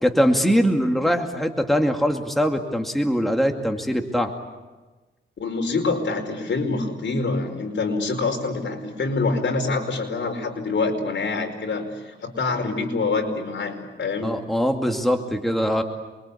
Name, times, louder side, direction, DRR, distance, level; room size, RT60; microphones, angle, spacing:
voice 1, 0.0-4.3 14.2-15.8, equal, ahead, 3 dB, 2.4 m, -22 dB
voice 2, 5.4-14.3, left 3 dB, 65° left, 3 dB, 5.1 m, -26 dB
28.0 x 23.0 x 8.6 m, 1.2 s
cardioid pair, 90°, 20 cm